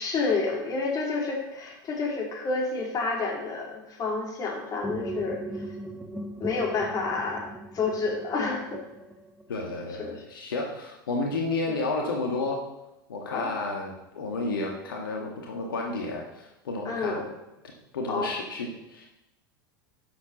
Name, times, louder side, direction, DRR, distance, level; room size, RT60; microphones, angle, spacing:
voice 1, 0.0-5.4 6.4-7.4 7.7-8.8 10.0-10.2 11.7-11.8 13.3-13.5 16.8-17.3 18.1-18.3, left 4 dB, 30° left, 0 dB, 2.9 m, -29 dB
sound 1, 4.8-9.6, right 1 dB, 5° right, 1.5 m, -38 dB
voice 2, 9.5-12.6 13.1-17.2 17.9-19.1, left 2 dB, 75° left, -1 dB, 1.6 m, -31 dB
11.5 x 7.1 x 4.0 m, 0.95 s
hypercardioid pair, 85°, 11 cm